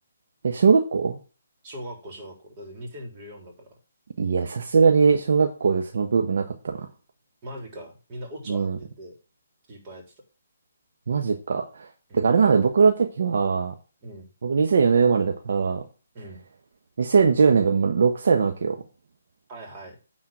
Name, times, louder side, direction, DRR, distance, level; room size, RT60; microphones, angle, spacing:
voice 1, 0.4-1.2 4.2-6.9 8.5-8.8 11.1-11.9 12.1-13.7 14.4-15.8 17.0-18.8, right 5 dB, 60° right, 4 dB, 1.2 m, -21 dB
voice 2, 1.6-3.7 7.4-9.1 9.7-10.0 12.1-12.3 14.0-14.3 16.1-16.4 19.5-20.0, equal, 30° right, 1 dB, 3.6 m, -40 dB
9.8 x 4.3 x 7.5 m, 0.35 s
figure-of-eight pair, 145°, 0 cm